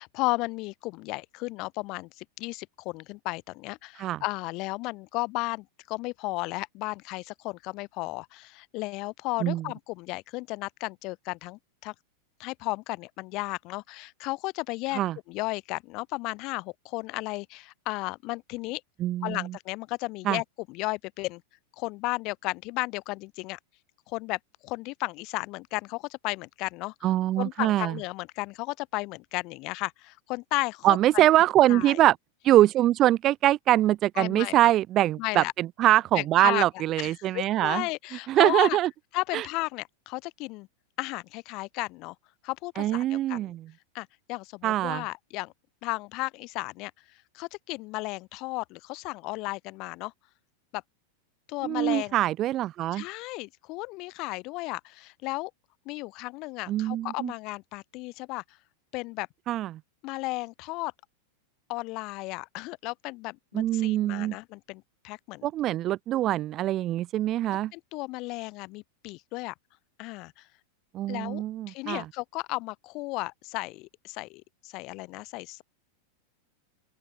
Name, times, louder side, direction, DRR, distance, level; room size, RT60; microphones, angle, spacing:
voice 1, 0.0-11.9 12.4-15.0 15.3-18.8 19.2-21.4 21.8-23.6 24.1-31.2 31.7-32.0 34.1-34.7 35.2-35.5 36.1-36.6 37.0-38.8 39.1-40.7 41.0-42.1 42.4-43.5 43.9-45.5 45.8-46.9 47.3-50.1 50.7-50.8 51.5-52.2 52.9-55.5 55.8-58.4 58.9-59.3 60.0-60.9 61.7-65.8 67.7-69.5 70.0-70.4 71.1-75.6, left 23 dB, 40° left, 6.8 m, -34 dB
voice 2, 19.0-19.5 20.3-20.4 27.0-27.9 30.8-32.2 32.4-37.8 38.3-38.9 39.3-39.4 42.8-43.6 44.6-45.0 51.6-53.0 56.7-57.3 59.5-59.8 63.5-64.3 65.4-67.7 70.9-72.0, right 14 dB, 35° right, 0.7 m, -23 dB
open air
figure-of-eight pair, 90°, 0 cm